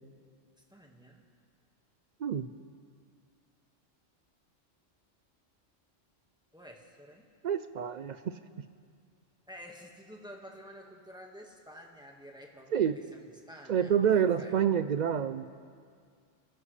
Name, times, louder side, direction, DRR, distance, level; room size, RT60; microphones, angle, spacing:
voice 1, 0.7-1.2 6.5-7.3 9.5-14.5, equal, 5° right, 0 dB, 1.6 m, -50 dB
voice 2, 2.2-2.5 7.4-8.4 12.7-13.0 13.7-15.5, right 8 dB, 75° right, 11 dB, 0.4 m, -28 dB
30.0 x 13.5 x 3.3 m, 2.2 s
omnidirectional pair, 1.3 m